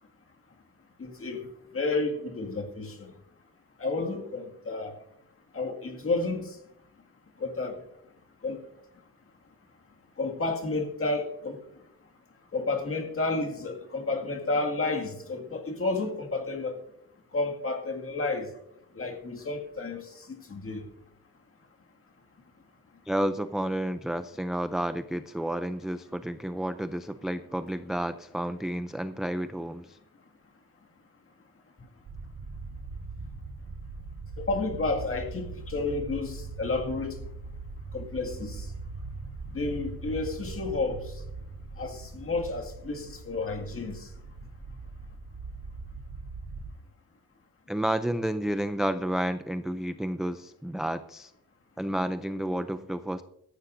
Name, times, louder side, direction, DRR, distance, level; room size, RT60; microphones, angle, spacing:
voice 1, 1.0-1.4 1.7-3.1 3.8-4.9 5.5-6.5 7.4-7.7 8.4-8.6 10.2-11.6 12.5-16.8 17.3-18.5 18.9-20.0 20.5-20.8 34.4-37.2 37.9-38.7 39.5-41.0 41.8-44.0, left 3 dB, 35° left, 2.1 m, -31 dB
voice 2, 23.1-30.0 47.7-51.3 51.8-53.2, right 1 dB, ahead, 0.4 m, -31 dB
sound 1, 32.1-46.7, right 3 dB, 70° right, 4.6 m, -41 dB
17.5 x 14.0 x 2.6 m
cardioid pair, 125°, 37 cm